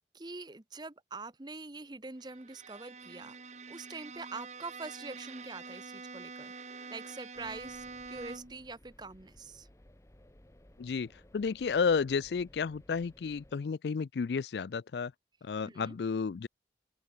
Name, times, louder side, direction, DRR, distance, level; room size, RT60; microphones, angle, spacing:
voice 1, 0.1-3.4 3.7-6.5 6.9-9.7 15.6-16.0, right 3 dB, 25° right, 0.8 m, -44 dB
Bowed string instrument, 2.2-8.7, right 4 dB, 40° right, 1.8 m, -46 dB
sound 1, 7.3-13.6, left 1 dB, 15° left, 1.0 m, -59 dB
voice 2, 10.8-15.1 15.4-16.5, left 5 dB, 75° left, 0.4 m, -32 dB
open air
head